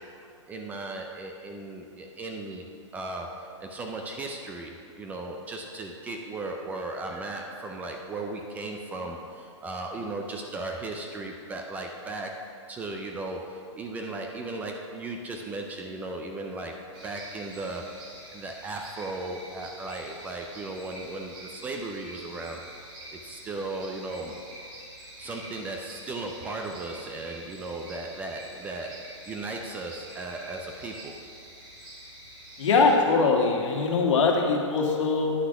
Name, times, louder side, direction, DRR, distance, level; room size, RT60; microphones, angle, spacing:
voice 1, 0.0-2.6 2.9-22.6 23.1-24.4 25.2-31.1, right 2 dB, 10° right, 2 dB, 0.4 m, -36 dB
sound 1, 16.9-32.9, right 1 dB, 30° right, 2.6 m, -46 dB
voice 2, 32.6-35.3, left 4 dB, 75° left, 0 dB, 1.8 m, -22 dB
10.0 x 6.0 x 5.8 m, 2.5 s
hypercardioid pair, 160°, 16 cm